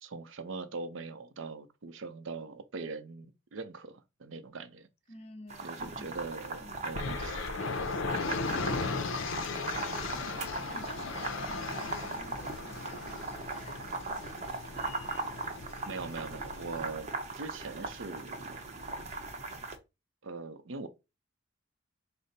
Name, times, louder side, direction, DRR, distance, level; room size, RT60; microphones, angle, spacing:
voice 1, 0.0-4.9 5.6-7.9 15.9-18.6 20.2-20.9, right 4 dB, 70° right, 0.6 m, -42 dB
voice 2, 5.1-6.2 6.6-6.9 9.5-14.9, left 2 dB, 30° left, 0.6 m, -52 dB
sound 1, 5.5-19.8, right 3 dB, 35° right, 0.7 m, -39 dB
sound 2, 6.9-16.8, left 4 dB, 75° left, 0.6 m, -37 dB
5.1 x 2.1 x 4.1 m
head